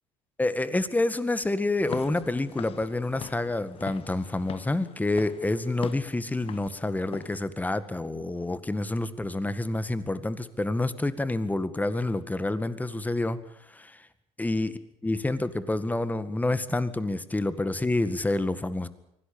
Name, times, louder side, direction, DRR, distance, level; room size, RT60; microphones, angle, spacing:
voice 1, 0.4-13.4 13.7-14.1 14.4-18.9, left 2 dB, 10° left, 13 dB, 1.9 m, -28 dB
Walk footsteps / Siren, 1.8-7.4, left 9 dB, 45° left, 1.1 m, -43 dB
24.0 x 17.0 x 8.7 m, 0.76 s
supercardioid pair, 85°, 14 cm